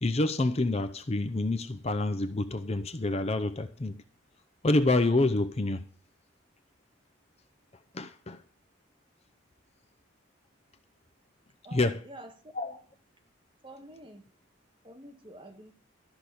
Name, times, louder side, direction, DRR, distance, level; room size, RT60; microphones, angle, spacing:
voice 1, 0.0-4.0 4.6-5.8 7.9-8.4 11.7-12.0 12.6-12.7, left 2 dB, 30° left, 0.6 m, -27 dB
voice 2, 11.6-12.4 12.6-12.8 13.6-14.3 14.8-15.7, right 1 dB, 25° right, 1.7 m, -48 dB
13.5 x 6.1 x 8.4 m
head